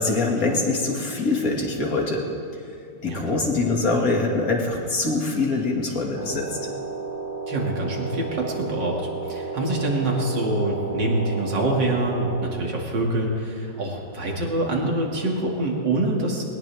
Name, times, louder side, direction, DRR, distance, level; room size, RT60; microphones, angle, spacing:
voice 1, 0.0-2.3 3.0-6.6, left 3 dB, 50° left, 0 dB, 2.6 m, -24 dB
voice 2, 3.1-3.4 7.5-9.0 9.3-16.4, right 2 dB, 75° right, -1 dB, 3.1 m, -25 dB
sound 1, 6.1-12.5, right 4 dB, 25° right, 3.1 m, -32 dB
21.0 x 19.5 x 3.5 m, 2.6 s
omnidirectional pair, 2.0 m